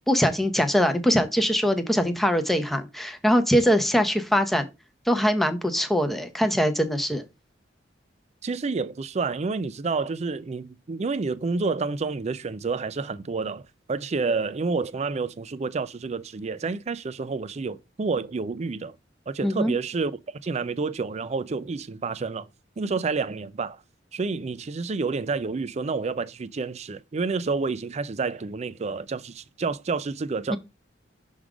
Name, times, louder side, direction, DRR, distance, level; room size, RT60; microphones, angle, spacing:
voice 1, 0.1-4.7 5.1-7.2 19.4-19.7 30.5-30.6, equal, ahead, 0.7 m, -22 dB
voice 2, 8.4-13.6 13.9-19.0 19.3-20.1 20.4-22.5 22.8-23.8 24.1-30.6, right 4 dB, 35° right, 0.4 m, -29 dB
6.2 x 3.6 x 4.9 m
head